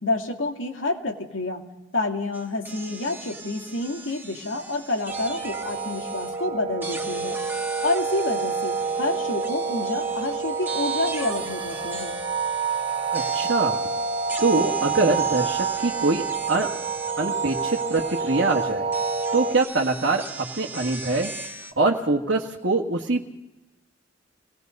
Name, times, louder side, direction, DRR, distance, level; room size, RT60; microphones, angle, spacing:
voice 1, 0.0-1.6 1.9-7.4 7.8-12.2, left 2 dB, 90° left, 3 dB, 2.4 m, -28 dB
sound 1, 2.3-6.4 6.8-21.7, right 3 dB, 10° right, 1.5 m, -38 dB
sound 2, 5.1-19.6, right 5 dB, 30° right, 1.0 m, -28 dB
voice 2, 13.1-13.7 14.4-16.7 17.2-18.9 19.3-21.3 21.8-23.3, right 3 dB, 65° right, 0 dB, 1.6 m, -24 dB
26.0 x 19.0 x 5.4 m, 1.0 s
head